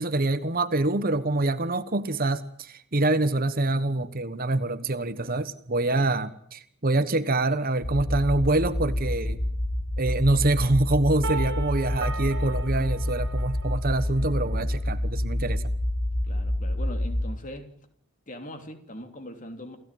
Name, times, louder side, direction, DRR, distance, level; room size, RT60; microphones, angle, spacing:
voice 1, 0.0-9.4 10.0-15.6, right 2 dB, 40° right, 12 dB, 1.2 m, -25 dB
sound 1, 7.8-17.3, left 1 dB, 80° left, 4.3 m, -28 dB
sound 2, 11.2-14.2, right 2 dB, 55° right, 2.0 m, -36 dB
voice 2, 16.2-17.7 18.3-19.8, equal, 35° left, 7 dB, 3.2 m, -41 dB
29.0 x 16.0 x 9.3 m, 0.65 s
head